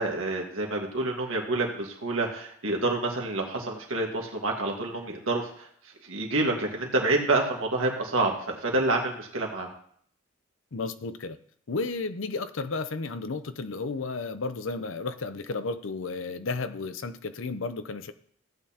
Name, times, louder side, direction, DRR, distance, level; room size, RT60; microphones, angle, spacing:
voice 1, 0.0-5.7 6.0-9.7, right 2 dB, 90° right, 0 dB, 1.7 m, -28 dB
voice 2, 10.7-11.4 11.7-18.1, left 3 dB, 80° left, 11 dB, 0.6 m, -33 dB
14.5 x 8.5 x 2.9 m, 0.62 s
head